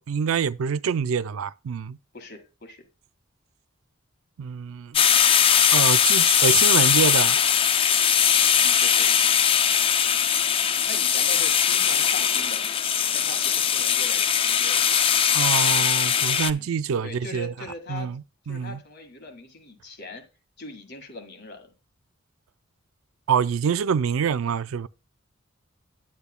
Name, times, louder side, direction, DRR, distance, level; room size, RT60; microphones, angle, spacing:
voice 1, 0.0-2.0 4.4-5.0 5.7-7.4 15.3-17.5 17.9-18.2 18.5-18.8 23.3-24.9, right 6 dB, 85° right, 0.4 m, -26 dB
voice 2, 2.1-2.8 8.6-9.1 10.9-12.7 13.1-15.0 16.5-16.7 17.0-18.1 18.5-20.2 20.6-21.7, left 2 dB, 55° left, 1.7 m, -41 dB
sound 1, 4.9-16.5, left 8 dB, 25° left, 0.3 m, -20 dB
10.0 x 8.3 x 2.2 m
head